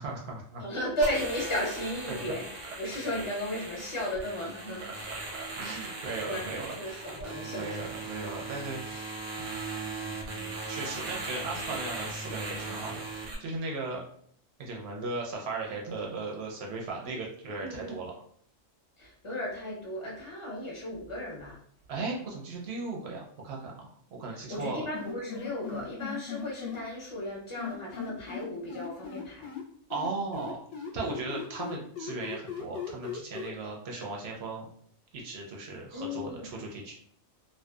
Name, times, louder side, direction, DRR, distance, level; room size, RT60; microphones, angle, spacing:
voice 1, 0.0-0.6 2.1-2.2 4.9-7.1 7.4-14.0 14.6-18.1 21.9-23.9 24.2-24.9 29.9-34.7 35.1-36.9, right 3 dB, 60° right, -1 dB, 0.7 m, -37 dB
voice 2, 0.6-2.5 2.8-5.3 6.2-6.5 6.8-7.9 17.6-18.0 19.0-21.6 24.3-29.5 35.9-36.5, left 1 dB, 30° left, -3 dB, 0.6 m, -35 dB
sound 1, 1.0-13.4, right 3 dB, 85° right, 1.1 m, -39 dB
sound 2, 24.5-26.8 27.6-29.6 29.9-33.5, left 7 dB, 65° left, 0.8 m, -38 dB
2.6 x 2.2 x 2.2 m, 0.63 s
omnidirectional pair, 1.4 m